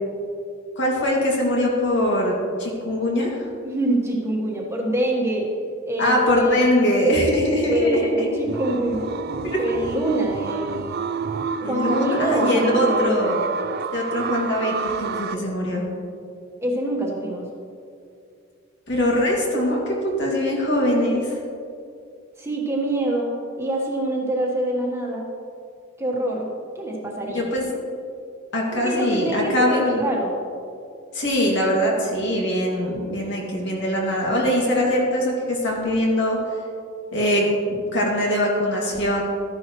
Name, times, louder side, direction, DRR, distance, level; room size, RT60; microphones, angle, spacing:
voice 1, 0.8-3.5 6.0-8.3 9.4-9.6 11.6-13.4 13.9-15.9 18.9-21.3 27.3-27.7 28.5-30.0 31.1-36.4 37.1-39.2, left 1 dB, 65° left, -2 dB, 2.3 m, -22 dB
voice 2, 3.6-5.5 5.8-7.0 7.6-9.1 9.6-11.0 11.7-13.4 16.6-17.5 22.4-25.3 26.0-26.5 26.7-27.5 28.7-30.3, right 1 dB, 15° right, -2 dB, 1.4 m, -25 dB
sound 1, 8.5-15.3, right 5 dB, 50° right, 0.4 m, -29 dB
13.0 x 10.5 x 3.1 m, 2.4 s
head